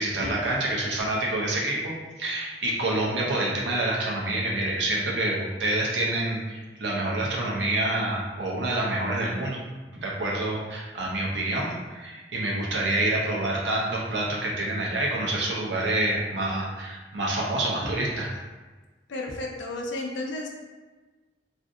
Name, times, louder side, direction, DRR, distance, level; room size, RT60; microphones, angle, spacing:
voice 1, 0.0-1.9 2.2-9.6 9.9-18.3, right 1 dB, 80° right, -3 dB, 0.7 m, -27 dB
voice 2, 19.1-20.5, left 2 dB, 90° left, 0 dB, 0.5 m, -32 dB
2.6 x 2.5 x 3.4 m, 1.3 s
head